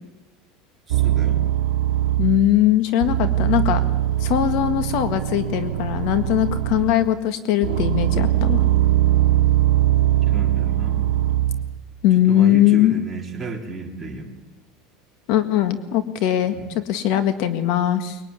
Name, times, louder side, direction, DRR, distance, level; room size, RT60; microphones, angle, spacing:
voice 1, 0.9-1.4 6.7-6.9 10.3-11.3 12.1-14.3 16.5-16.6, right 3 dB, 10° right, 0 dB, 3.6 m, -33 dB
sound 1, 0.9-2.6 3.0-7.1 7.6-11.8, right 13 dB, 85° right, 1.1 m, -21 dB
voice 2, 2.2-3.8 4.2-8.6 12.0-12.9 15.3-18.2, left 12 dB, 55° left, 10 dB, 1.7 m, -20 dB
23.5 x 22.0 x 9.8 m, 1.0 s
cardioid pair, 165°, 0 cm